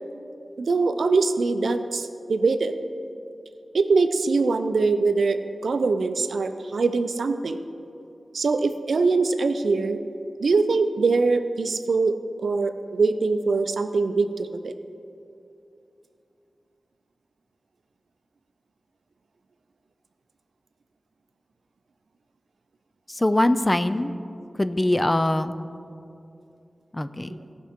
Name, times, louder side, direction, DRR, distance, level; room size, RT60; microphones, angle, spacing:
voice 1, 0.6-2.7 3.7-7.6 8.3-10.0 10.4-14.7, right 4 dB, 85° right, 9 dB, 0.5 m, -23 dB
voice 2, 23.2-24.1 24.6-25.6 26.9-27.3, left 1 dB, 20° left, 11 dB, 0.4 m, -22 dB
17.5 x 5.9 x 3.6 m, 2.7 s
wide cardioid pair, 75°, 0 cm